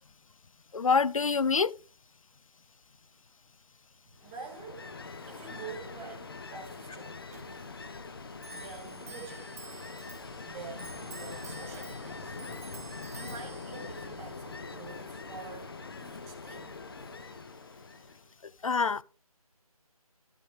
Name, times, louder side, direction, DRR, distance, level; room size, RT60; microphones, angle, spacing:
voice 1, 0.7-1.7 18.6-19.0, left 5 dB, 60° left, 0.5 m, -25 dB
voice 2, 4.0-7.2 8.5-9.6 10.4-12.4 12.8-16.8, right 5 dB, 10° right, 1.0 m, -47 dB
Ocean, 4.2-18.3, left 4 dB, 40° left, 0.8 m, -43 dB
Clock, 7.3-17.2, right 3 dB, 25° right, 1.3 m, -50 dB
12.5 x 7.2 x 3.4 m
figure-of-eight pair, 160°, 19 cm